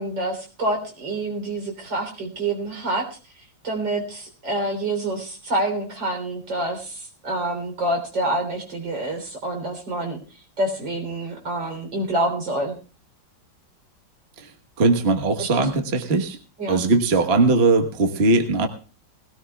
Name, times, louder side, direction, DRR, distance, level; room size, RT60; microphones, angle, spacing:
voice 1, 0.0-3.1 3.6-10.2 10.6-12.8 15.4-15.7 16.6-16.8, right 1 dB, 70° right, 2 dB, 4.2 m, -27 dB
voice 2, 14.8-16.4 16.7-18.7, right 3 dB, 35° right, 5 dB, 1.3 m, -19 dB
20.5 x 17.0 x 2.3 m, 0.36 s
omnidirectional pair, 2.1 m